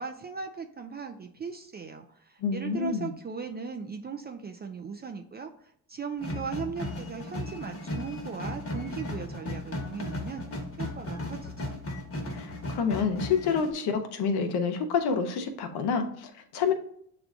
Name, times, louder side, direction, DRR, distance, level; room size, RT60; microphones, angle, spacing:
voice 1, 0.0-10.4 10.8-11.8, right 5 dB, 25° right, 5 dB, 0.3 m, -38 dB
voice 2, 2.4-3.1 12.3-16.7, left 6 dB, 60° left, 7 dB, 0.8 m, -28 dB
sound 1, 6.2-13.7, left 1 dB, 30° left, 1.1 m, -36 dB
6.6 x 2.4 x 2.3 m, 0.67 s
supercardioid pair, 70°, 44 cm